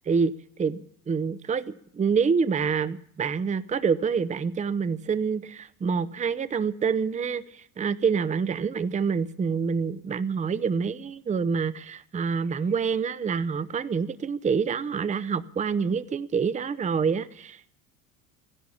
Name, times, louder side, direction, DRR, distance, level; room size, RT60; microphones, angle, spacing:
voice 1, 0.1-17.6, right 6 dB, 15° right, 0.7 m, -27 dB
15.0 x 11.0 x 8.5 m
hypercardioid pair, 75°, 43 cm